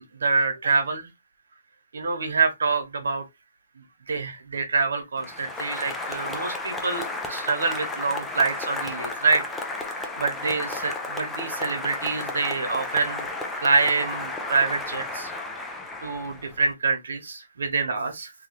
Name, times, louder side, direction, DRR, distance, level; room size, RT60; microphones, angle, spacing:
voice 1, 0.2-1.1 1.9-3.2 4.1-9.4 9.7-13.3 13.6-15.3 16.0-18.3, right 4 dB, 80° right, 1.0 m, -26 dB
Applause, 5.2-16.7, left 2 dB, 5° left, 0.3 m, -33 dB
3.0 x 2.3 x 2.9 m
hypercardioid pair, 170°, 0 cm